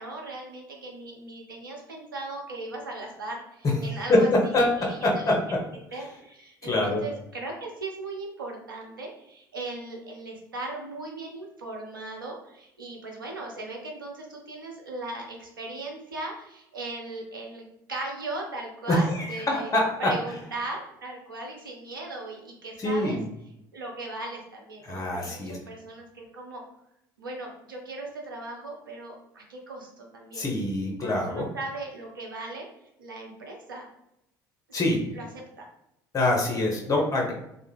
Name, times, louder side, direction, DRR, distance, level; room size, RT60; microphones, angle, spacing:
voice 1, 0.0-5.6 5.9-19.7 20.0-23.2 23.7-26.6 27.2-30.4 31.0-32.7 33.0-33.9 34.7-35.7, right 2 dB, 90° right, 0 dB, 0.5 m, -38 dB
voice 2, 3.6-5.6 5.9-6.0 6.6-7.0 18.9-20.1 22.8-23.2 24.8-25.6 30.3-31.5 34.7-35.0 36.1-37.3, left 1 dB, 30° left, -1 dB, 0.8 m, -25 dB
2.3 x 2.2 x 3.0 m, 0.83 s
hypercardioid pair, 60°, 11 cm